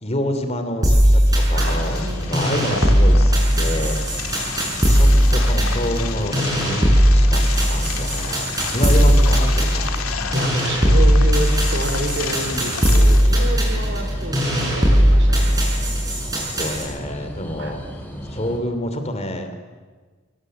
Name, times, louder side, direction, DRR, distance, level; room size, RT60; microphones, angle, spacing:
voice 1, 0.0-1.2 1.5-4.3 4.9-7.4 7.7-9.9 13.8-13.9 16.4-17.8 18.3-19.5, left 1 dB, 30° left, 7 dB, 2.9 m, -28 dB
sound 1, 0.8-16.8, equal, 15° right, 6.9 m, -18 dB
sound 2, 1.4-18.6, equal, 10° left, 3.9 m, -34 dB
voice 2, 1.5-2.2 8.9-9.5 10.3-15.6 17.6-17.7, right 1 dB, 55° right, 5 dB, 4.5 m, -29 dB
sound 3, 1.7-13.3, left 7 dB, 80° left, 2.1 m, -32 dB
25.0 x 23.5 x 7.9 m, 1.4 s
head